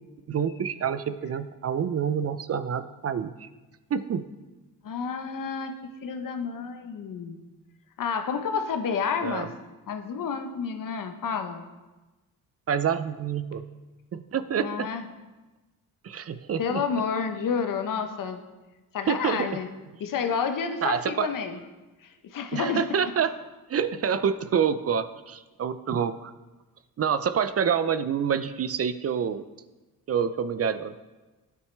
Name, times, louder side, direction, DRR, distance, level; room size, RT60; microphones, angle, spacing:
voice 1, 0.3-3.5 3.9-4.2 9.2-9.5 12.7-13.6 14.1-14.9 16.0-16.8 19.1-19.5 20.8-21.3 22.5-23.3 23.7-26.3 27.0-29.4 30.1-30.9, right 7 dB, 45° right, 12 dB, 0.5 m, -27 dB
voice 2, 4.8-5.7 6.0-7.4 8.0-9.5 9.9-11.6 14.6-15.0 16.6-18.4 18.9-19.7 20.0-21.6 22.0-22.8, left 6 dB, 65° left, 7 dB, 0.9 m, -30 dB
9.6 x 8.7 x 3.3 m, 1.2 s
cardioid pair, 90°, 36 cm